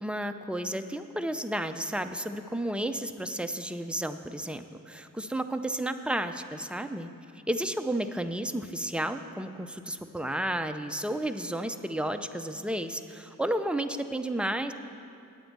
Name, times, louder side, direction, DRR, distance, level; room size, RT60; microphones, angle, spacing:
voice 1, 0.0-7.1 7.5-14.7, right 1 dB, 5° right, 8 dB, 0.5 m, -32 dB
9.0 x 8.9 x 7.3 m, 2.5 s
wide cardioid pair, 40°, 35 cm